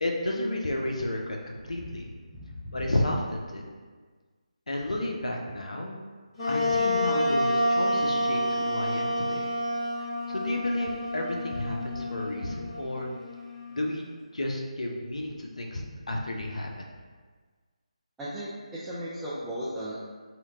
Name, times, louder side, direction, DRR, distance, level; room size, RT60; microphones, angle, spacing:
voice 1, 0.0-2.1 2.7-3.6 4.7-6.0 6.4-9.4 10.3-13.1 13.7-14.1 14.3-16.9, left 1 dB, 70° left, 0 dB, 0.5 m, -32 dB
voice 2, 2.3-2.8 18.2-19.9, equal, 5° right, -13 dB, 0.3 m, -36 dB
Wind instrument woodwind instrument, 6.4-13.8, left 1 dB, 40° left, 1.2 m, -29 dB
2.9 x 2.1 x 3.6 m, 1.5 s
figure-of-eight pair, 155°, 4 cm